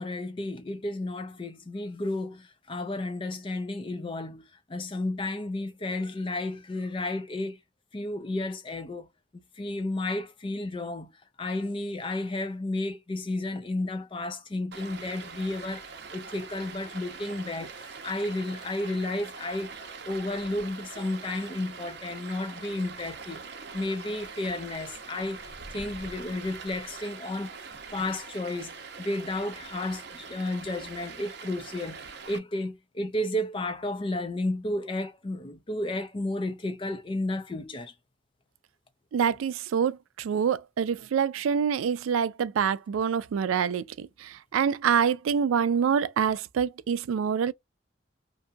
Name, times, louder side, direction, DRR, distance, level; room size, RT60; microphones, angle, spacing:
voice 1, 0.0-7.6 7.9-9.1 9.3-11.1 11.4-23.5 23.7-27.5 27.9-28.7 29.0-37.9, left 2 dB, 25° left, 0.4 m, -32 dB
Stream, 14.7-32.4, right 5 dB, 55° right, 0.6 m, -43 dB
voice 2, 39.1-47.5, right 7 dB, 90° right, 0.3 m, -26 dB
2.7 x 2.5 x 2.2 m
head